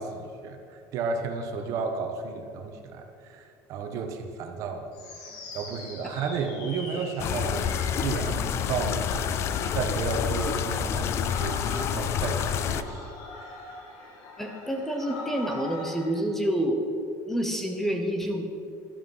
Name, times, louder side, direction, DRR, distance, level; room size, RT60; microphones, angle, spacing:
voice 1, 0.0-4.9 5.2-13.1 13.4-13.8, right 5 dB, 50° right, 5 dB, 1.4 m, -33 dB
sound 1, 4.9-16.2, left 3 dB, 75° left, 2.6 m, -42 dB
sound 2, 7.2-12.8, left 9 dB, 40° left, 0.5 m, -28 dB
voice 2, 14.4-16.8 17.3-18.5, right 1 dB, 5° left, 3 dB, 1.0 m, -28 dB
12.0 x 11.5 x 5.7 m, 2.6 s
cardioid pair, 165°, 7 cm